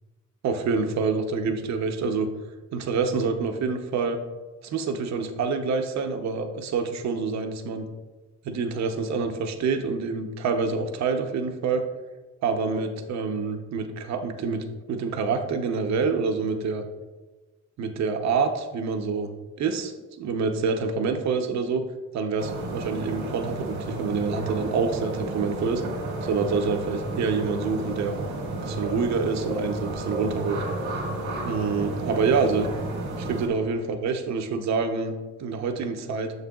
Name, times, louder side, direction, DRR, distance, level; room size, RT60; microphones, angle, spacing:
voice 1, 0.4-2.3 2.7-4.2 4.6-7.9 8.4-11.8 12.4-16.8 17.8-19.3 19.6-19.9 20.2-21.8 22.1-25.8 26.2-28.2 28.6-30.6 31.4-32.6 33.2-35.1 35.4-36.3, right 5 dB, 65° right, 6 dB, 0.8 m, -27 dB
ambience winter crow birds distant traffic construction, 22.4-33.5, right 2 dB, 85° right, 1.7 m, -32 dB
6.7 x 6.5 x 2.3 m, 1.2 s
cardioid pair, 90°, 30 cm